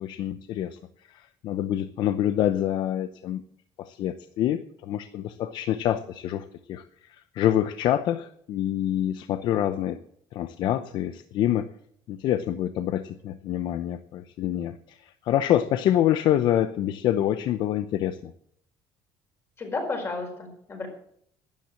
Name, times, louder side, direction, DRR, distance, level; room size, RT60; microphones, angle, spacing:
voice 1, 0.0-3.4 3.8-10.0 10.3-11.7 12.1-18.3, left 11 dB, 60° left, 11 dB, 0.7 m, -26 dB
voice 2, 19.6-20.9, left 3 dB, 30° left, 3 dB, 4.8 m, -32 dB
12.5 x 10.5 x 7.6 m, 0.68 s
cardioid pair, 145°, 9 cm